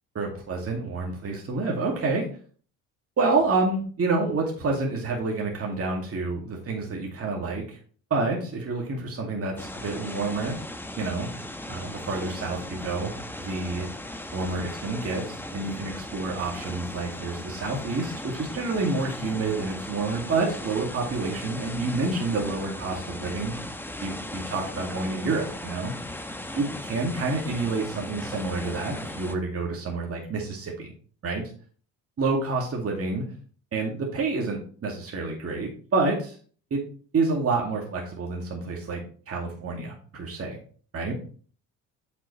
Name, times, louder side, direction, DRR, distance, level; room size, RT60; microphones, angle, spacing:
voice 1, 0.1-2.3 3.2-7.8 8.1-10.6 11.0-11.3 11.7-13.9 14.3-23.5 24.0-25.9 26.5-30.9 31.2-31.5 32.2-33.2 33.7-36.4 36.7-36.8 37.1-40.6 40.9-41.2, right 3 dB, 40° right, -1 dB, 2.3 m, -28 dB
sound 1, 9.6-29.4, left 1 dB, 5° left, 1.0 m, -37 dB
7.7 x 6.3 x 3.2 m, 0.43 s
supercardioid pair, 80°, 35 cm